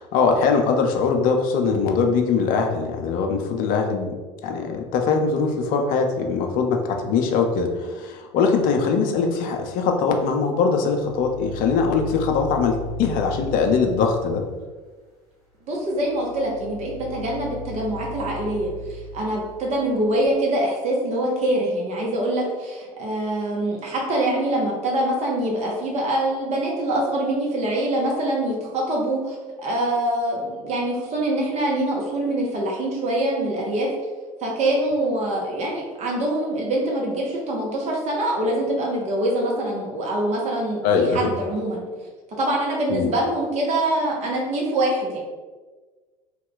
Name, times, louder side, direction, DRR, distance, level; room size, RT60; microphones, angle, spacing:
voice 1, 0.0-4.1 4.4-14.4 40.8-41.3 42.9-43.1, left 5 dB, 50° left, 3 dB, 0.5 m, -22 dB
sound 1, 10.9-14.6 15.9-20.3, left 2 dB, ahead, 1.4 m, -37 dB
voice 2, 15.6-33.9 34.4-41.8 42.4-45.2, right 1 dB, 35° right, -2 dB, 0.9 m, -24 dB
3.0 x 2.2 x 3.9 m, 1.3 s
hypercardioid pair, 70°, 18 cm